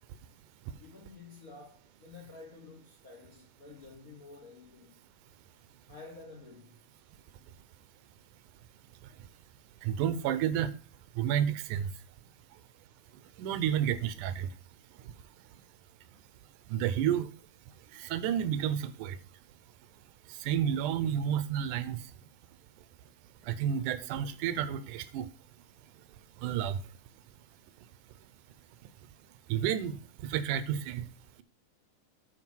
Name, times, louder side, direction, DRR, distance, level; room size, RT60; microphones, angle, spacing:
voice 1, 0.8-5.0 5.9-6.9, left 3 dB, 60° left, 0.9 m, -51 dB
voice 2, 9.8-10.7 11.2-11.9 13.4-14.5 16.7-17.3 17.9-19.2 20.4-22.0 23.5-25.3 26.4-26.8 29.5-31.0, right 9 dB, 85° right, 2.2 m, -30 dB
9.0 x 4.6 x 6.1 m
omnidirectional pair, 3.6 m